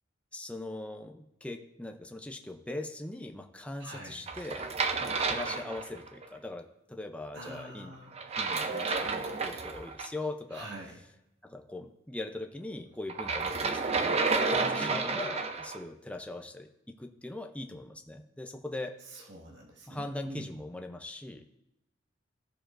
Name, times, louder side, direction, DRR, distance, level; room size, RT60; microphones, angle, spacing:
voice 1, 0.3-4.7 5.0-7.9 8.4-10.7 11.4-18.9 19.9-21.4, left 2 dB, 5° left, 4 dB, 0.6 m, -41 dB
voice 2, 3.8-4.2 7.3-8.2 10.5-11.0 14.8-15.0 19.1-20.5, right 1 dB, 65° right, -2 dB, 1.9 m, -45 dB
sound 1, 4.3-6.2 8.1-10.1 13.1-15.8, right 4 dB, 35° right, 0.6 m, -31 dB
16.0 x 6.8 x 2.5 m, 0.89 s
head